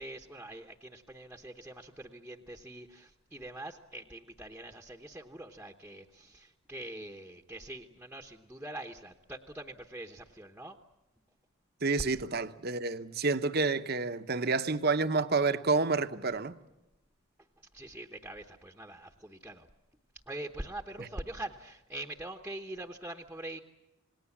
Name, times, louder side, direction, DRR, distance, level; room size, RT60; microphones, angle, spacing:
voice 1, 0.0-10.8 17.7-19.7 20.3-23.6, right 1 dB, 5° right, 1.0 m, -44 dB
voice 2, 11.8-16.5 21.0-21.1, right 3 dB, 45° right, 1.0 m, -29 dB
28.0 x 19.5 x 7.2 m
head